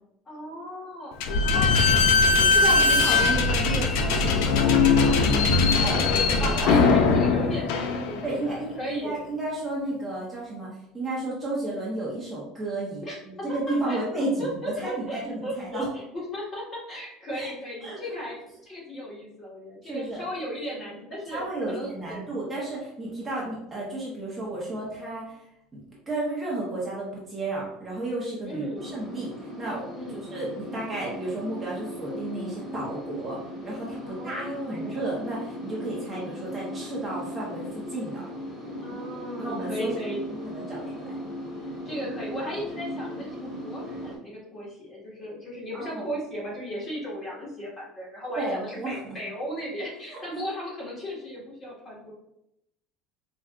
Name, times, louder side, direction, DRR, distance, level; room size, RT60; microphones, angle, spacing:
voice 1, 0.3-1.2 1.4-1.8 2.1-3.2 4.5-5.5 6.0-9.2 13.0-13.2 13.9-14.0 14.4-22.3 28.5-28.9 29.9-30.3 34.0-35.0 38.8-40.2 41.6-52.1, equal, 25° left, -5 dB, 1.5 m, -36 dB
Slam / Squeak, 1.2-8.5, left 4 dB, 75° left, 0.4 m, -21 dB
voice 2, 2.4-4.7 5.0-5.2 5.6-6.0 6.4-6.8 8.2-15.9 17.3-17.5 17.8-18.2 19.8-20.2 21.3-25.4 25.7-33.4 33.6-38.2 39.4-39.9 40.3-41.2 45.7-46.0 48.4-49.2 50.1-50.4, right 2 dB, 20° right, -5 dB, 0.9 m, -33 dB
sound 1, 28.7-44.2, equal, 5° left, 1.4 m, -37 dB
4.5 x 2.4 x 2.4 m, 0.82 s
cardioid pair, 145°, 0 cm